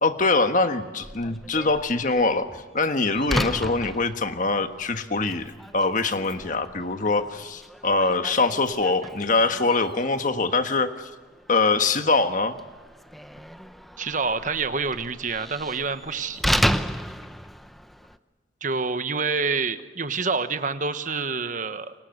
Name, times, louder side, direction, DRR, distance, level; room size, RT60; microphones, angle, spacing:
voice 1, 0.0-2.5 2.7-11.1 11.5-12.6, left 3 dB, 45° left, 8 dB, 1.4 m, -23 dB
Slam, 1.0-18.2, equal, ahead, 0.7 m, -33 dB
voice 2, 14.0-16.4 18.6-21.9, right 4 dB, 45° right, 10 dB, 1.2 m, -27 dB
28.0 x 24.0 x 6.7 m, 1.4 s
head